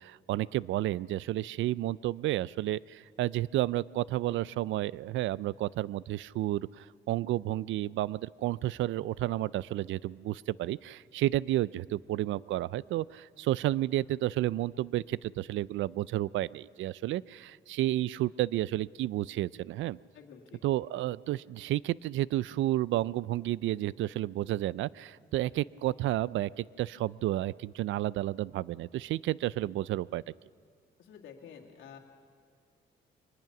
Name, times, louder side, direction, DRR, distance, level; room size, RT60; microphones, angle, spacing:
voice 1, 0.0-20.0 20.6-30.2, right 15 dB, 75° right, 21 dB, 0.4 m, -31 dB
voice 2, 20.1-20.6 31.0-32.0, left 7 dB, 80° left, 0 dB, 2.2 m, -50 dB
23.5 x 20.0 x 6.0 m, 2.2 s
cardioid pair, 90°, 20 cm